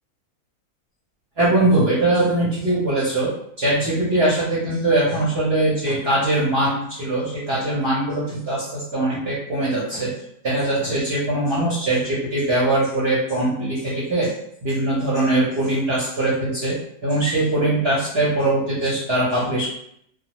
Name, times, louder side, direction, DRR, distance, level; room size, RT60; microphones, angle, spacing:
voice 1, 1.4-3.3 3.6-10.1 10.4-14.3 14.6-19.7, right 2 dB, 50° right, -8 dB, 0.9 m, -21 dB
2.4 x 2.3 x 2.9 m, 0.72 s
omnidirectional pair, 1.6 m